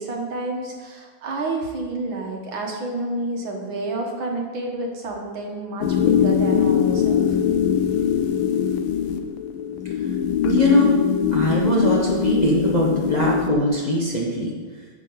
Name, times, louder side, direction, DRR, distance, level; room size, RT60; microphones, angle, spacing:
voice 1, 0.0-7.4, right 2 dB, 65° right, 0 dB, 2.1 m, -29 dB
sound 1, 5.8-13.7, left 8 dB, 75° left, 1.4 m, -22 dB
voice 2, 10.4-10.9 11.3-14.5, left 1 dB, 25° left, -4 dB, 1.2 m, -21 dB
11.5 x 6.7 x 4.0 m, 1.5 s
omnidirectional pair, 2.3 m